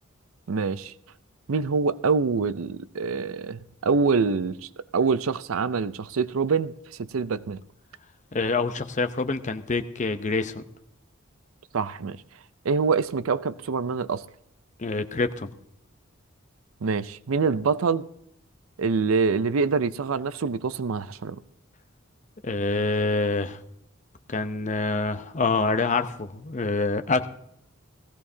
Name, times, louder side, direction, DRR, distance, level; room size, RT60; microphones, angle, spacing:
voice 1, 0.5-0.9 1.5-6.7 7.0-7.6 11.7-12.2 12.6-14.2 16.8-18.1 18.8-21.4, right 5 dB, 90° right, 0.5 m, -25 dB
voice 2, 8.3-10.6 14.8-15.5 22.4-23.6 24.3-27.3, left 3 dB, 35° left, 0.7 m, -26 dB
18.0 x 16.0 x 2.8 m
head